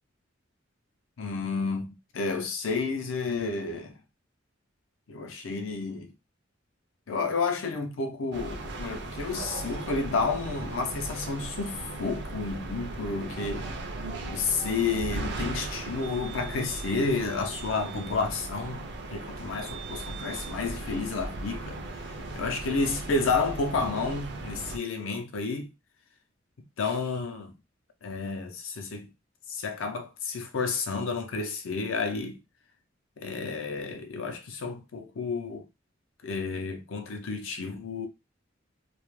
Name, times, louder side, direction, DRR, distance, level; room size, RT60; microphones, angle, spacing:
voice 1, 1.2-4.0 5.1-6.1 7.1-13.7 14.3-25.7 26.8-27.5 28.0-29.1 29.5-32.4 33.2-35.7 36.2-38.1, left 4 dB, 80° left, 0.5 m, -31 dB
sound 1, 8.3-24.8, right 2 dB, 60° right, 0.4 m, -37 dB
2.3 x 2.0 x 3.0 m
head